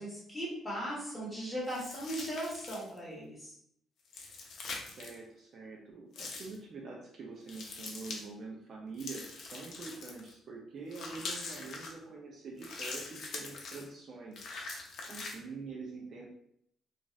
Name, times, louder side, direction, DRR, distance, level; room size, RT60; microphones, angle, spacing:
voice 1, 0.0-3.5 15.1-15.2, equal, 5° left, -7 dB, 1.4 m, -38 dB
sound 1, 1.7-3.0 4.0-5.2 6.1-6.6 7.5-8.2 9.0-10.3 10.9-11.9 12.6-13.9 14.3-15.4, left 3 dB, 65° left, 0.6 m, -43 dB
voice 2, 4.8-14.5 15.0-16.3, right 4 dB, 50° right, -1 dB, 0.6 m, -45 dB
2.5 x 2.4 x 3.1 m, 0.71 s
cardioid pair, 115°, 0 cm